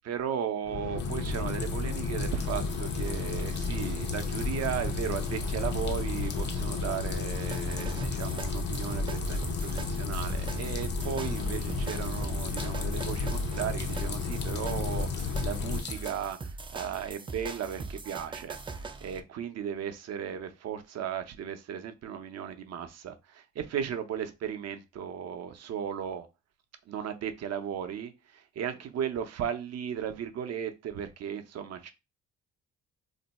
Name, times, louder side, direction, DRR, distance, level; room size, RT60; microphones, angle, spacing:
voice 1, 0.0-26.3 26.9-31.9, right 8 dB, 55° right, 0.6 m, -36 dB
sound 1, 0.6-15.8, left 4 dB, 80° left, 0.7 m, -32 dB
Tub Close drain, 1.0-16.1, left 5 dB, 35° left, 0.6 m, -44 dB
sound 2, 2.5-19.2, right 4 dB, 15° right, 0.3 m, -42 dB
2.6 x 2.2 x 4.0 m
cardioid pair, 90°, 30 cm